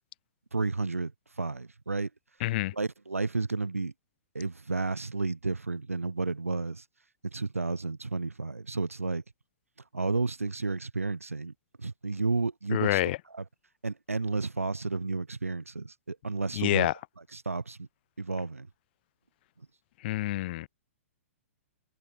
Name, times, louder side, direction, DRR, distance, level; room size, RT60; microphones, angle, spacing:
voice 1, 0.5-1.1 1.4-2.1 2.7-3.9 4.3-6.8 7.2-9.2 9.9-11.5 11.8-13.0 13.3-13.4 13.8-16.9 17.3-17.9 18.2-18.7, right 3 dB, 85° right, 7.4 m, -31 dB
voice 2, 2.4-2.7 12.7-13.2 16.5-16.9 20.0-20.7, left 17 dB, 45° left, 2.7 m, -27 dB
figure-of-eight pair, 115°, 7 cm